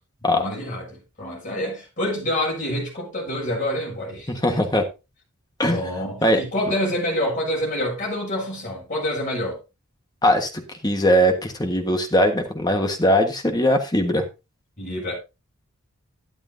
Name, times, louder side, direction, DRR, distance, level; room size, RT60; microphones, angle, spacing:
voice 1, 0.3-4.8 5.7-9.6 14.8-15.2, left 1 dB, 35° left, 7.0 m, -27 dB
voice 2, 4.4-4.8 5.6-5.8 6.2-6.4 10.2-10.5 10.8-14.2, equal, 20° left, 1.4 m, -20 dB
13.0 x 10.0 x 2.7 m
head